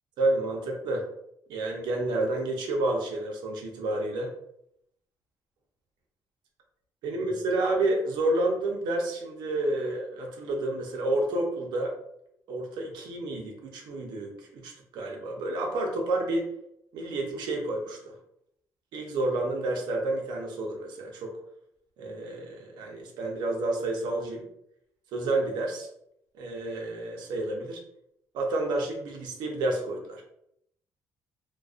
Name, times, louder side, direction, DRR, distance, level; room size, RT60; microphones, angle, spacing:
voice 1, 0.2-1.1 1.5-4.3 7.0-11.9 12.5-16.5 16.9-18.1 18.9-21.3 22.0-24.5 25.1-25.9 26.3-27.8 28.3-30.2, right 2 dB, 90° right, 1 dB, 0.6 m, -30 dB
2.3 x 2.2 x 2.4 m, 0.76 s
cardioid pair, 180°, 7 cm